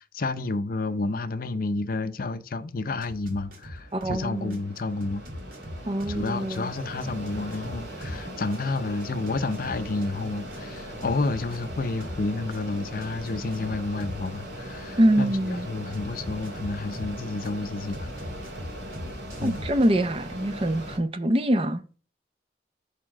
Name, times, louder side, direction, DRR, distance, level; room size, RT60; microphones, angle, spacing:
voice 1, 0.0-5.2 6.1-18.1 19.4-19.6, left 3 dB, 50° left, 0.5 m, -30 dB
sound 1, 3.0-4.2 4.5-8.2 8.5-12.2 12.5-14.3 15.9-17.5 17.9-19.9, left 1 dB, 55° right, 2.2 m, -40 dB
Mechanisms, 3.0-21.0, equal, 75° right, 2.1 m, -39 dB
voice 2, 3.9-4.6 5.9-6.7 15.0-15.7 19.4-21.8, right 1 dB, 30° right, 0.6 m, -24 dB
6.7 x 3.6 x 6.2 m
head